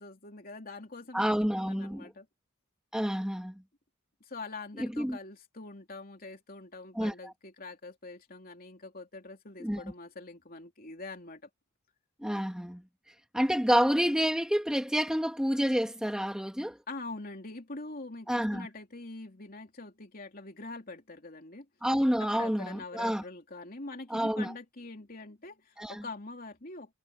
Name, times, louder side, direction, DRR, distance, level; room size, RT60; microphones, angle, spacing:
voice 1, 0.0-1.4 1.6-2.3 4.3-11.5 16.9-21.7 22.2-26.9, left 3 dB, 40° left, 3.2 m, -44 dB
voice 2, 1.1-2.1 2.9-3.5 4.8-5.2 6.9-7.3 9.6-9.8 12.2-12.8 13.3-16.8 18.3-18.7 21.8-23.2 24.1-24.5 25.8-26.0, equal, 5° right, 1.9 m, -29 dB
head